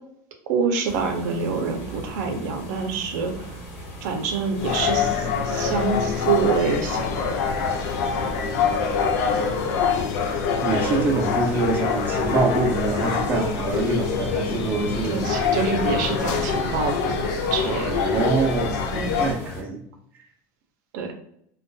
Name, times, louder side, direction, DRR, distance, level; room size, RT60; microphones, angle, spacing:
voice 1, 0.5-3.5 4.0-7.3 15.0-17.9 18.9-19.2 20.9-21.1, right 5 dB, 80° right, 4 dB, 0.5 m, -26 dB
sound 1, 0.8-19.6, equal, 90° left, 1.0 m, -39 dB
sound 2, 4.5-19.3, left 6 dB, 70° left, 0.4 m, -25 dB
voice 2, 10.6-15.3 17.9-18.9 19.2-19.8, right 4 dB, 20° right, 1 dB, 0.3 m, -25 dB
2.2 x 2.2 x 2.5 m, 0.71 s
cardioid pair, 165°, 9 cm